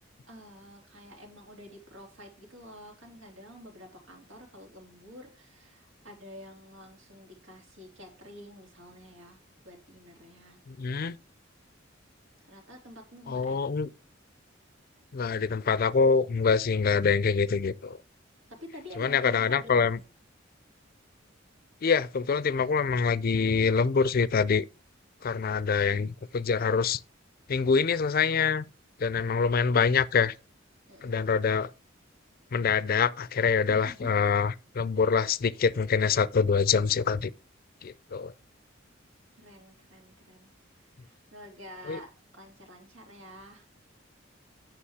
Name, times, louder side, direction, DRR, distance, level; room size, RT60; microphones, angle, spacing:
voice 1, 0.3-9.4 9.6-10.6 12.5-13.7 18.5-19.9 30.9-31.2 33.7-34.1 39.4-40.5 41.0-43.6, equal, 90° right, 3.3 m, -49 dB
voice 2, 10.7-11.2 13.3-13.9 15.1-18.0 19.0-20.0 21.8-24.6 25.2-27.0 27.5-28.6 29.0-30.3 31.0-31.7 32.5-37.3 37.8-38.3 41.9-42.0, left 5 dB, 50° left, 0.4 m, -25 dB
8.5 x 6.0 x 4.8 m
head